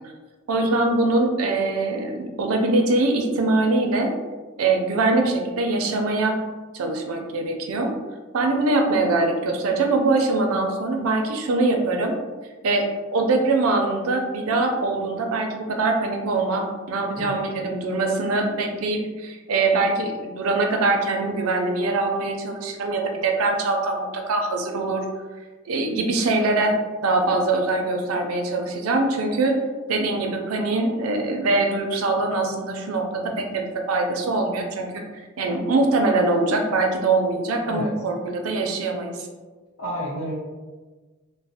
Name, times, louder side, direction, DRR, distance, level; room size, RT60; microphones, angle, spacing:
voice 1, 0.5-4.1 4.6-6.4 6.7-7.9 8.3-12.1 12.6-12.9 13.1-25.0 25.7-29.6 29.9-35.0 35.4-39.3, right 2 dB, 85° right, 3 dB, 0.5 m, -23 dB
voice 2, 39.8-40.3, equal, 90° left, -5 dB, 1.1 m, -30 dB
3.0 x 2.0 x 2.7 m, 1.3 s
head